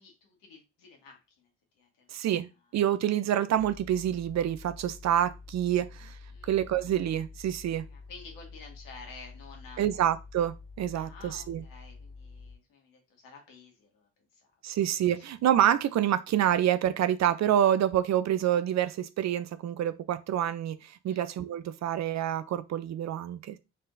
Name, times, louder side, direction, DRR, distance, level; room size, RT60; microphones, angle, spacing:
voice 1, 0.0-1.5 1.7-2.1 6.3-6.5 7.8-10.0 10.9-14.8 15.1-15.3 21.0-21.2, left 4 dB, 70° left, 1.7 m, -51 dB
voice 2, 2.1-6.2 6.4-7.9 9.8-11.6 14.6-23.6, right 11 dB, 50° right, 0.5 m, -27 dB
sound 1, 3.5-12.6, left 4 dB, 85° right, 0.9 m, -48 dB
4.0 x 3.6 x 2.6 m
hypercardioid pair, 45°, 35 cm